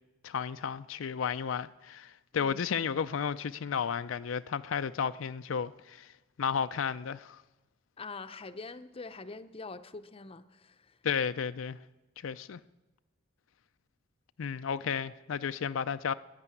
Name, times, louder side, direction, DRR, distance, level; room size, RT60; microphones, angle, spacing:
voice 1, 0.2-6.1 6.4-7.4 11.0-11.8 12.2-12.6 14.4-16.1, left 7 dB, 80° left, 0.4 m, -33 dB
voice 2, 8.0-11.0, left 3 dB, 30° left, 0.6 m, -44 dB
15.0 x 9.8 x 9.7 m
head